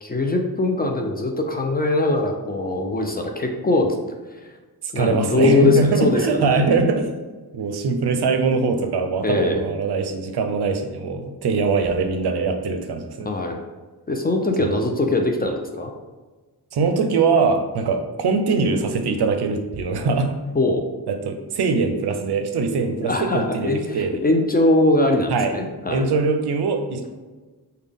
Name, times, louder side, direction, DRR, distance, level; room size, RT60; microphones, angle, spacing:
voice 1, 0.0-4.0 4.3-4.5 4.9-6.8 9.2-9.7 13.2-13.6 14.1-15.9 20.5-20.8 23.0-26.1, left 2 dB, 25° left, 3 dB, 0.3 m, -21 dB
voice 2, 4.8-7.1 7.5-13.3 14.6-14.7 16.7-20.3 21.1-24.2 25.3-25.5 25.9-27.1, right 4 dB, 75° right, 6 dB, 0.5 m, -22 dB
3.5 x 2.2 x 3.4 m, 1.3 s
wide cardioid pair, 75°, 40 cm